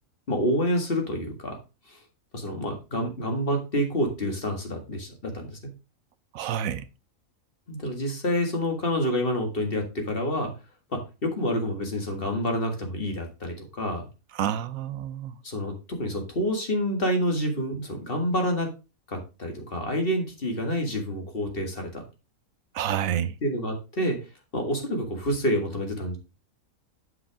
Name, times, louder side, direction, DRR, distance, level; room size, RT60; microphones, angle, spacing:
voice 1, 0.3-1.6 1.9-2.0 2.3-5.6 7.7-10.5 10.9-14.1 15.4-18.7 19.1-22.0 23.4-24.2 24.5-26.2, equal, 40° left, 2.0 m, -28 dB
voice 2, 6.3-6.9 14.3-15.4 22.7-23.4, right 10 dB, 80° right, 1.0 m, -28 dB
7.7 x 6.0 x 3.5 m
omnidirectional pair, 1.4 m